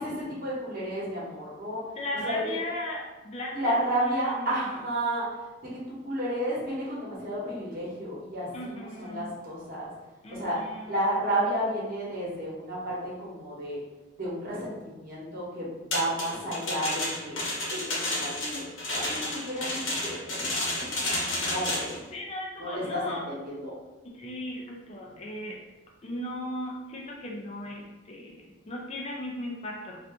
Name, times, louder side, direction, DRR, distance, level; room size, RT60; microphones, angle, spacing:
voice 1, 0.0-1.8 2.2-2.4 3.5-5.3 5.6-9.9 10.3-10.6 10.8-13.8 14.2-17.4 17.7-18.6 18.9-22.0 22.6-23.7, right 1 dB, 50° right, -6 dB, 1.1 m, -32 dB
voice 2, 2.0-4.5 8.5-9.3 10.2-10.9 22.1-23.3 24.0-25.6 26.0-30.0, left 1 dB, 35° left, -2 dB, 0.5 m, -37 dB
sound 1, 15.9-22.0, left 1 dB, 90° left, 0.9 m, -31 dB
2.6 x 2.5 x 3.5 m, 1.1 s
head